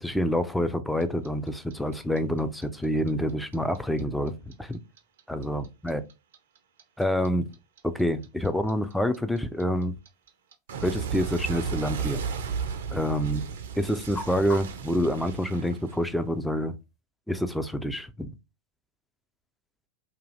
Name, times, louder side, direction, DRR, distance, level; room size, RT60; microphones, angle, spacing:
voice 1, 0.0-4.3 4.6-4.8 5.3-6.0 7.0-7.5 7.8-9.9 10.8-12.3 12.9-13.4 13.8-16.7 17.3-18.3, equal, ahead, 0.4 m, -27 dB
Clock, 1.0-4.0 4.3-7.3 7.5-16.4, right 6 dB, 60° right, 0.5 m, -34 dB
sound 1, 10.1-17.0, left 2 dB, 25° left, 0.8 m, -48 dB
2.6 x 2.4 x 3.1 m
figure-of-eight pair, 90°, 0 cm